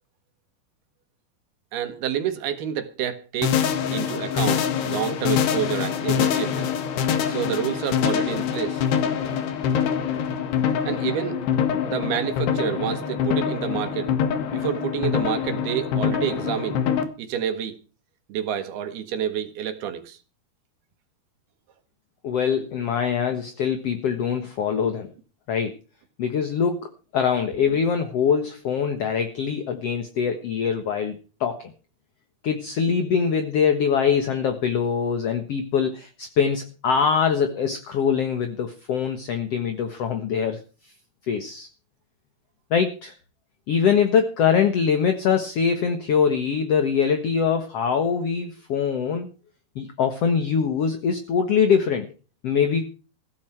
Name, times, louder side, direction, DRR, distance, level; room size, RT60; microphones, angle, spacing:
voice 1, 1.7-3.6 3.9-6.7 7.3-8.8 10.9-11.4 11.9-14.2 14.5-16.8 17.2-17.8 18.3-20.2, right 9 dB, 70° right, 3.6 m, -28 dB
sound 1, 3.4-17.0, left 8 dB, 85° left, 3.9 m, -25 dB
voice 2, 22.2-25.1 25.5-25.7 26.2-31.1 31.4-31.7 32.4-40.9 41.3-41.7 42.7-43.1 43.7-49.3 49.7-52.1 52.4-52.8, left 7 dB, 55° left, 1.8 m, -23 dB
16.0 x 14.0 x 4.6 m
omnidirectional pair, 4.7 m